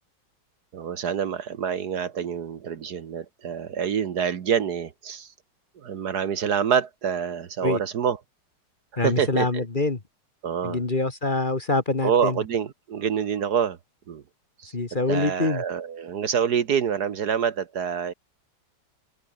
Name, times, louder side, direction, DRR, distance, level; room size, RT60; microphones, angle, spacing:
voice 1, 0.7-5.3 5.8-8.2 9.0-9.6 10.4-10.8 12.0-13.8 14.1-14.2 14.6-14.7 15.1-18.1, right 7 dB, 60° right, 1.6 m, -26 dB
voice 2, 9.0-10.0 10.6-12.4 14.7-15.6, left 2 dB, 25° left, 1.8 m, -25 dB
omnidirectional pair, 2.0 m